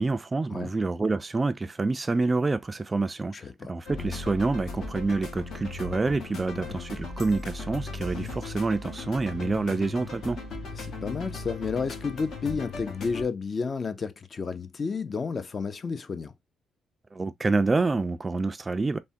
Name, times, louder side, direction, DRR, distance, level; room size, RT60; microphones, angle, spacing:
voice 1, 0.0-10.4 17.1-19.0, right 3 dB, 25° right, 0.3 m, -27 dB
voice 2, 3.3-3.7 6.5-6.8 10.7-16.3, left 5 dB, 40° left, 0.5 m, -32 dB
sound 1, 3.9-13.3, left 3 dB, 65° left, 1.0 m, -37 dB
3.4 x 2.1 x 2.6 m
cardioid pair, 90°, 0 cm